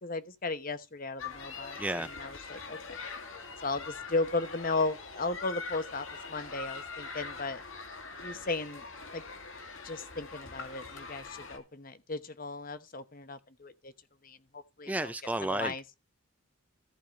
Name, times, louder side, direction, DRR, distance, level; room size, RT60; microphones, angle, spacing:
voice 1, 0.0-1.8 2.0-3.0 3.6-7.6 8.2-8.8 9.1-9.2 9.8-13.9 14.2-15.1 15.4-15.8, left 3 dB, 40° left, 1.0 m, -35 dB
sound 1, 1.2-11.6, left 4 dB, 65° left, 2.3 m, -43 dB
voice 2, 1.8-2.1 14.9-15.7, right 1 dB, 5° right, 0.4 m, -32 dB
14.5 x 4.9 x 4.8 m
head